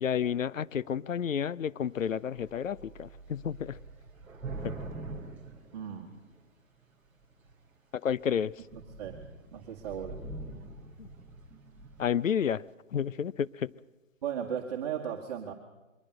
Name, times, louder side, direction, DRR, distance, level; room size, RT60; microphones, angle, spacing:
voice 1, 0.0-3.8 4.6-4.7 8.0-8.5 11.0-11.1 12.0-12.6 12.9-13.7, left 8 dB, 85° left, 0.6 m, -30 dB
Thunder / Rain, 2.0-2.1 2.4-6.5 7.2-7.7 8.1-8.2 8.5-12.2, right 2 dB, 5° right, 0.7 m, -44 dB
voice 2, 5.7-6.1 8.7-9.2 9.5-10.2 14.2-15.5, right 8 dB, 30° right, 1.8 m, -36 dB
22.5 x 15.0 x 7.8 m
hypercardioid pair, 150°, 39 cm